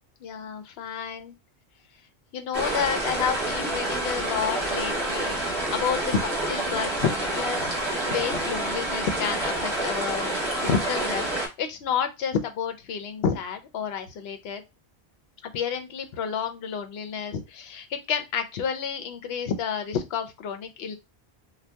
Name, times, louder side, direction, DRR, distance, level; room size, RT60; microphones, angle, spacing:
voice 1, 0.2-1.3 2.3-10.3 10.6-11.3 11.6-14.6 15.4-21.0, left 7 dB, 75° left, 7 dB, 0.8 m, -30 dB
sound 1, 2.5-11.5, right 1 dB, 25° right, 1.1 m, -28 dB
2.7 x 2.2 x 3.3 m, 0.24 s
omnidirectional pair, 1.1 m